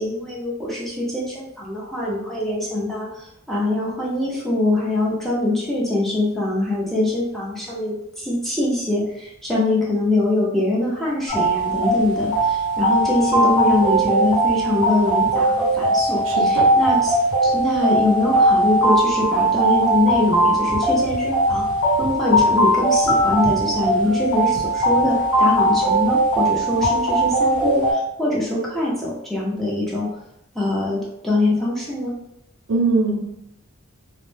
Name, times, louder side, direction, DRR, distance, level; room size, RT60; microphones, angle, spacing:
voice 1, 0.0-17.2 17.4-21.6 22.0-30.1 30.5-32.2, left 2 dB, ahead, -6 dB, 0.4 m, -23 dB
sound 1, 11.3-27.9, right 1 dB, 85° left, 0.9 m, -19 dB
voice 2, 16.3-16.7 32.7-33.2, right 3 dB, 65° right, -1 dB, 0.5 m, -20 dB
2.0 x 2.0 x 3.1 m, 0.80 s
head